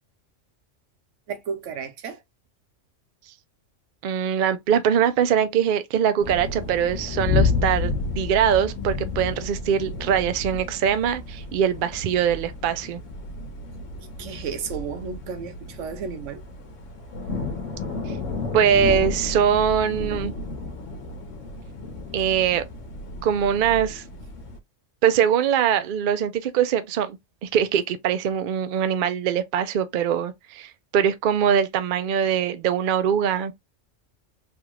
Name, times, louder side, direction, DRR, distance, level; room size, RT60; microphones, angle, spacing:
voice 1, 1.3-2.2 14.2-16.4, right 6 dB, 80° right, 1.0 m, -33 dB
voice 2, 4.0-13.0 18.1-18.2 18.5-20.3 22.1-22.6 23.2-24.0 25.0-33.5, right 8 dB, 60° right, 0.5 m, -22 dB
sound 1, 6.2-24.6, left 4 dB, 85° left, 1.2 m, -31 dB
3.4 x 2.4 x 2.9 m
omnidirectional pair, 1.3 m